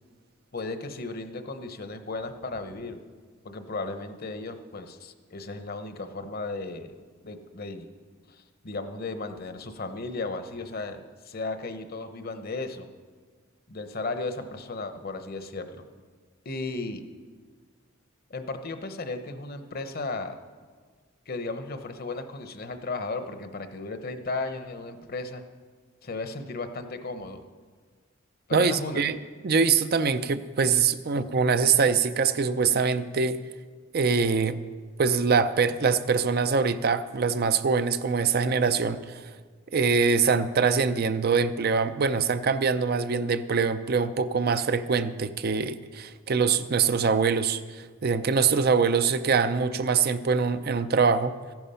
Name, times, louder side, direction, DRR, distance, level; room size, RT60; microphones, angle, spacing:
voice 1, 0.5-3.0 3.4-6.9 7.2-7.9 8.6-12.9 13.7-15.8 16.4-17.0 18.3-20.4 21.3-25.4 26.0-27.4 28.5-29.0, left 3 dB, 50° left, 8 dB, 0.9 m, -35 dB
voice 2, 28.5-29.2 29.4-33.4 33.9-34.6 35.0-39.2 39.7-51.3, right 5 dB, 50° right, 11 dB, 0.5 m, -24 dB
14.5 x 10.5 x 5.6 m, 1.5 s
head